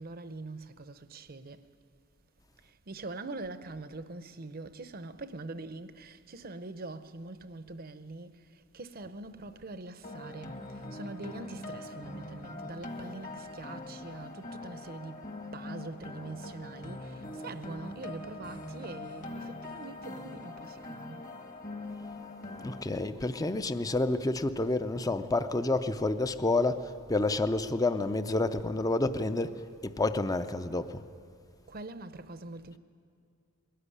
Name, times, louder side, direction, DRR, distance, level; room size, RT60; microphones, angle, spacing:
voice 1, 0.0-1.6 2.9-8.4 8.7-10.5 10.9-15.2 15.5-21.2 31.7-32.8, right 2 dB, 45° right, 0.7 m, -43 dB
sound 1, 10.0-22.8, left 2 dB, 40° left, 1.4 m, -42 dB
voice 2, 22.6-31.0, left 2 dB, 20° left, 0.5 m, -29 dB
21.0 x 13.5 x 9.8 m
head